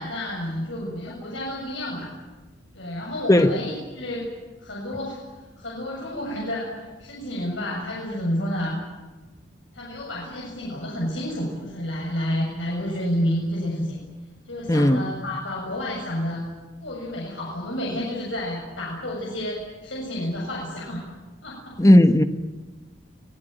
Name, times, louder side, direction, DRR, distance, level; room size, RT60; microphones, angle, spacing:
voice 1, 0.0-2.1 2.7-4.2 4.6-6.7 7.0-8.8 9.7-14.0 14.5-16.4 16.8-21.0 21.4-21.8, left 1 dB, 75° left, 7.3 m, -30 dB
voice 2, 14.7-15.1 21.8-22.2, left 1 dB, 15° left, 1.2 m, -15 dB
25.0 x 19.5 x 9.1 m
head